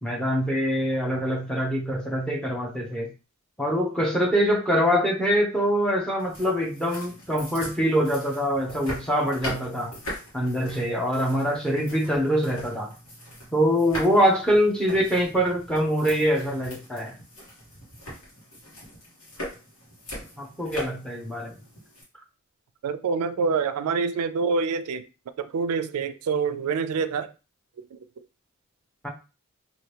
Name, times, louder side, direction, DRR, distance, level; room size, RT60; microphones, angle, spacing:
voice 1, 0.0-3.1 3.6-10.0 10.3-12.9 13.5-17.2 20.4-21.5 29.0-29.1, equal, 5° left, 0.6 m, -24 dB
sound 1, 6.2-22.0, equal, 70° left, 1.4 m, -41 dB
voice 2, 22.8-25.1 25.4-27.3 27.9-28.0, right 5 dB, 85° right, 0.3 m, -26 dB
2.9 x 2.5 x 3.2 m
head